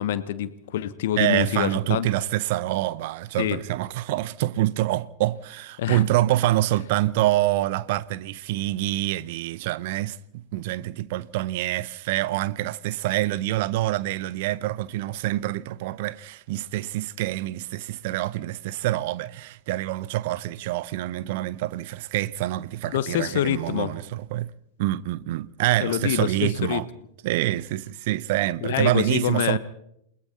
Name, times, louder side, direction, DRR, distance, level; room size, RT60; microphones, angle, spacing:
voice 1, 0.0-2.1 3.4-3.6 5.8-6.0 22.9-23.9 25.8-26.8 28.6-29.6, left 11 dB, 55° left, 1.2 m, -26 dB
voice 2, 1.2-24.5 24.8-26.9 27.2-29.6, right 15 dB, 50° right, 0.7 m, -26 dB
28.5 x 21.5 x 4.2 m
figure-of-eight pair, 90°, 0 cm